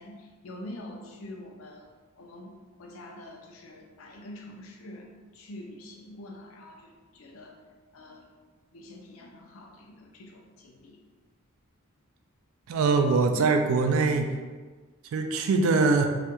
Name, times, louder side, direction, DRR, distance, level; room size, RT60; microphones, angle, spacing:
voice 1, 0.0-1.9 2.2-7.6 7.9-8.3 8.7-11.0, left 1 dB, 75° left, 1 dB, 0.4 m, -45 dB
voice 2, 12.7-14.3 15.1-16.1, right 4 dB, 80° right, 5 dB, 0.3 m, -22 dB
2.3 x 2.1 x 2.9 m, 1.4 s
head